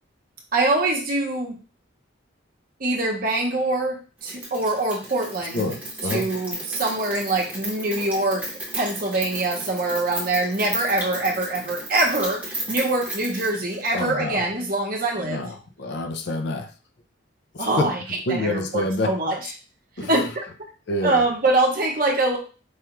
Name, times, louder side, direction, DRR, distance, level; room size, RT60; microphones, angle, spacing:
voice 1, 0.5-1.6 2.8-5.6 6.1-8.4 8.7-15.5 17.6-18.0 18.3-19.4 20.1-20.3 21.0-22.4, right 2 dB, 45° right, 0 dB, 0.8 m, -24 dB
Rain, 4.2-14.1, right 1 dB, 10° right, 0.8 m, -34 dB
voice 2, 5.5-6.3 13.9-14.5 15.2-16.7 17.5-17.9 18.3-19.1 20.0-20.1 20.9-21.3, left 2 dB, 55° left, 6 dB, 0.5 m, -27 dB
4.7 x 2.3 x 3.0 m, 0.35 s
head